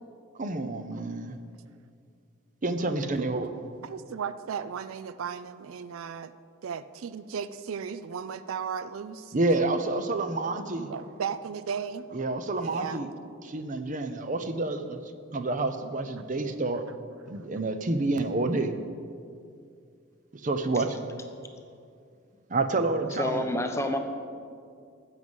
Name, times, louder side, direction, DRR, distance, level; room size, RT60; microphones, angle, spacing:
voice 1, 0.4-1.4 2.6-3.5 9.3-10.9 12.1-13.1 13.4-15.0 15.3-16.8 17.3-18.7 20.4-21.0 22.5-23.4, right 2 dB, 40° right, 9 dB, 0.6 m, -28 dB
voice 2, 3.8-6.3 6.6-9.3 10.9-12.0 12.6-13.0, right 7 dB, 75° right, 14 dB, 0.4 m, -35 dB
voice 3, 23.1-24.0, left 1 dB, 15° left, 5 dB, 0.7 m, -29 dB
13.0 x 8.0 x 5.4 m, 2.3 s
head